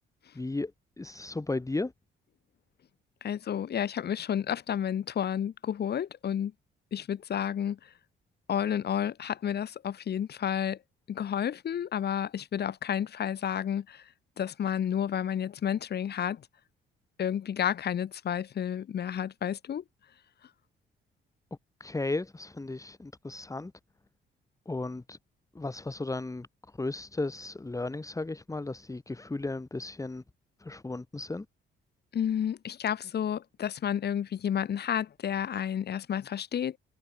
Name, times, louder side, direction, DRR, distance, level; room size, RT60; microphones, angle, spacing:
voice 1, 0.3-0.7 1.0-1.9 21.8-23.7 24.7-25.2 25.5-26.5 26.8-30.2 30.6-31.5, left 2 dB, 15° left, 2.6 m, -35 dB
voice 2, 3.2-6.5 6.9-7.8 8.5-10.8 11.1-14.0 14.4-16.4 17.2-19.8 32.1-36.8, left 9 dB, 55° left, 1.7 m, -31 dB
cardioid pair, 90°, 20 cm